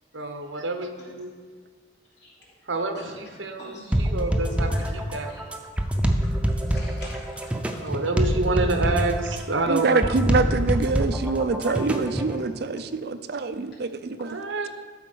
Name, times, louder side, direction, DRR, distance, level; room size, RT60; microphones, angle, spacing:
voice 1, 0.1-1.3 2.7-5.3 7.8-10.4 14.2-14.7, right 3 dB, 90° right, 6 dB, 1.0 m, -28 dB
voice 2, 3.6-4.0 4.7-4.8 5.3-5.4 6.2-6.3 6.6-7.9, left 1 dB, 65° left, -7 dB, 3.3 m, -44 dB
sound 1, 3.9-12.4, right 1 dB, 5° right, 0.6 m, -25 dB
voice 3, 9.7-14.3, right 3 dB, 55° right, 10 dB, 0.5 m, -25 dB
12.0 x 4.3 x 6.2 m, 1.5 s
head